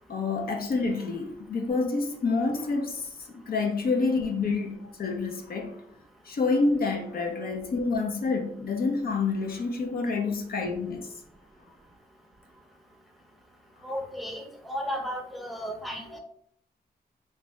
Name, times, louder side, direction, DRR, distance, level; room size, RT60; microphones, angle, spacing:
voice 1, 0.1-5.8 6.2-11.1, left 3 dB, 60° left, 0.6 m, -28 dB
voice 2, 13.8-16.2, equal, ahead, 0.7 m, -34 dB
3.2 x 2.7 x 3.2 m
cardioid pair, 75°, 17 cm